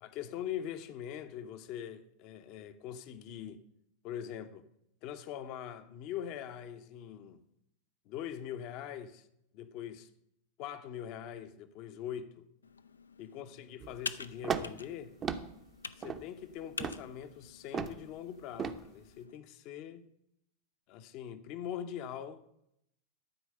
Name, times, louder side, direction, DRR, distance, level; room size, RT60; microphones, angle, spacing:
voice 1, 0.0-3.6 4.0-4.6 5.0-7.4 8.1-9.3 9.5-10.1 10.6-12.4 13.2-15.1 16.0-20.1 20.9-22.4, left 10 dB, 40° left, 0.7 m, -42 dB
Computer keyboard, 12.6-19.4, left 5 dB, 75° left, 0.4 m, -47 dB
sound 1, 13.8-14.0 14.4-14.8 15.2-15.5 16.0-16.2 16.8-17.0 17.7-18.0 18.6-18.8, right 6 dB, 25° right, 0.7 m, -35 dB
11.5 x 4.7 x 6.6 m
figure-of-eight pair, 90°, 0 cm